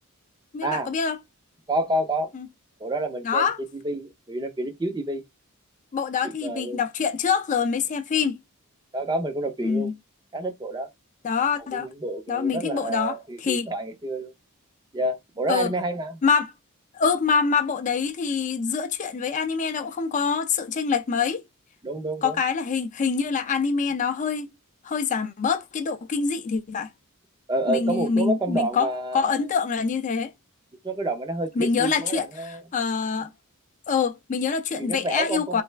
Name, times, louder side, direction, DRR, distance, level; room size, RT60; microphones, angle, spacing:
voice 1, 0.5-1.2 2.3-2.5 3.2-3.6 5.9-8.4 9.6-9.9 11.2-11.9 12.3-13.7 15.5-15.7 16.2-16.5 16.9-21.4 22.2-24.5 24.8-26.9 27.7-30.3 31.6-33.3 33.9-35.6, left 5 dB, 35° left, 0.4 m, -25 dB
voice 2, 1.7-2.3 2.8-3.5 3.8-5.2 6.2-6.8 8.9-9.9 10.3-10.9 11.7-14.3 14.9-16.2 21.8-22.4 27.5-29.3 30.8-32.6 34.8-35.6, right 1 dB, 20° right, 0.5 m, -29 dB
3.3 x 2.3 x 3.2 m
head